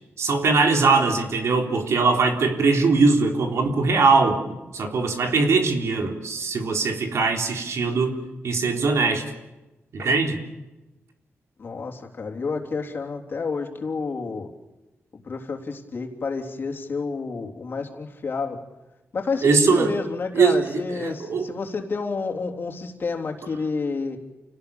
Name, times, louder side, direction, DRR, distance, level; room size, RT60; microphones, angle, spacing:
voice 1, 0.2-4.4 4.7-8.2 8.4-9.2 9.9-10.4 19.4-19.9 20.3-21.5, right 4 dB, 75° right, 3 dB, 3.7 m, -21 dB
voice 2, 11.6-14.5 15.1-18.6 19.1-24.2, left 4 dB, 45° left, 3 dB, 3.5 m, -29 dB
29.5 x 18.5 x 7.1 m, 1.0 s
wide cardioid pair, 140°, 5 cm